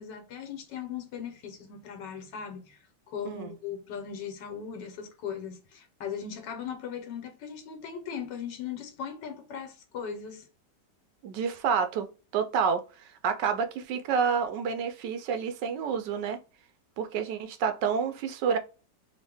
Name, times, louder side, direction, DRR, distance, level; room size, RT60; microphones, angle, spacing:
voice 1, 0.0-2.8 3.1-10.5, left 7 dB, 80° left, 1.5 m, -38 dB
voice 2, 11.2-12.1 12.3-16.4 17.0-18.6, right 6 dB, 80° right, 1.3 m, -29 dB
3.6 x 2.2 x 3.4 m
omnidirectional pair, 1.9 m